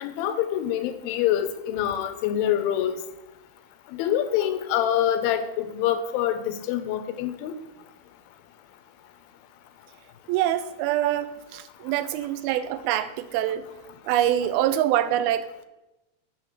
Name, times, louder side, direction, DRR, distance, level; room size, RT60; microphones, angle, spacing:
voice 1, 0.0-3.0 4.0-7.6, left 10 dB, 85° left, 10 dB, 2.5 m, -25 dB
voice 2, 10.3-13.6 14.1-15.5, right 12 dB, 90° right, 12 dB, 2.4 m, -25 dB
8.6 x 3.2 x 6.4 m, 0.98 s
omnidirectional pair, 4.3 m